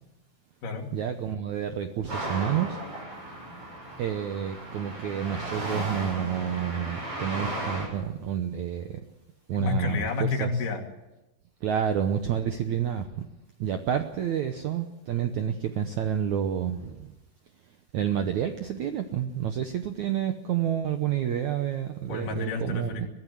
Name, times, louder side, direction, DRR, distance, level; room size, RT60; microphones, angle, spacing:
voice 1, 0.9-2.8 4.0-9.0 9.5-10.1 11.6-13.3 13.6-17.1 17.9-22.9, right 9 dB, 70° right, 7 dB, 1.8 m, -29 dB
sound 1, 2.1-7.9, right 1 dB, 40° right, 8.1 m, -35 dB
voice 2, 9.5-10.8 22.1-23.1, left 4 dB, 55° left, 1 dB, 4.0 m, -30 dB
23.0 x 14.5 x 7.9 m, 0.99 s
omnidirectional pair, 4.6 m